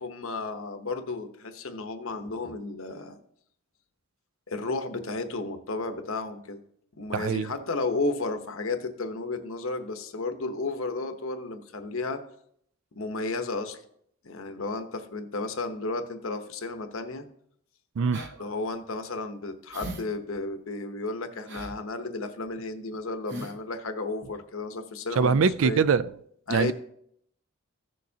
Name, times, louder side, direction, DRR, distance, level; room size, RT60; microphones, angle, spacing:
voice 1, 0.0-3.2 4.5-6.6 7.0-12.2 12.9-13.8 14.2-17.3 18.4-25.8 26.5-26.7, left 3 dB, 70° left, 0.9 m, -33 dB
voice 2, 7.1-7.5 18.0-18.5 25.2-26.1 26.5-26.7, right 5 dB, 70° right, 0.4 m, -23 dB
sound 1, 18.1-18.3 18.7-18.8 19.7-20.0 20.3-20.4 21.5-21.8 22.5-22.6 22.9-23.0 23.3-23.6 24.2-24.4, right 1 dB, 55° right, 0.9 m, -39 dB
15.5 x 6.6 x 2.8 m
head